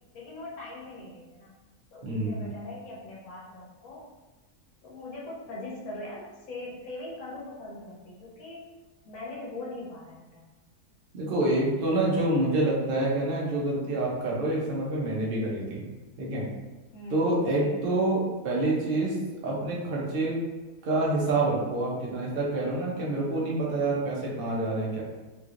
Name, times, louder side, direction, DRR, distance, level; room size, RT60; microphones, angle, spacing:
voice 1, 0.1-1.5 1.9-4.0 4.8-8.6 9.1-10.5 16.9-17.9, left 2 dB, 65° left, -5 dB, 1.3 m, -41 dB
voice 2, 2.0-2.4 11.1-15.8 16.2-16.5 17.1-19.1 19.4-20.4 20.8-25.0, right 2 dB, 45° right, -4 dB, 0.8 m, -27 dB
3.2 x 3.1 x 2.5 m, 1.2 s
omnidirectional pair, 1.7 m